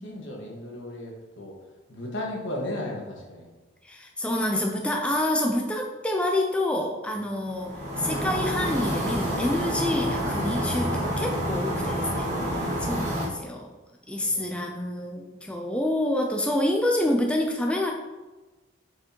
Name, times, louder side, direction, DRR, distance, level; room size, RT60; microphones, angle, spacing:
voice 1, 0.0-1.5 1.9-3.5 10.8-10.9 14.2-14.8 15.4-15.5, left 1 dB, 75° left, -1 dB, 1.6 m, -36 dB
voice 2, 3.8-12.3 12.5-13.7 14.1-17.9, left 1 dB, 5° left, 1 dB, 0.5 m, -27 dB
sound 1, 7.5-13.3, equal, 40° right, 1.7 m, -28 dB
6.7 x 6.1 x 3.0 m, 1.2 s
head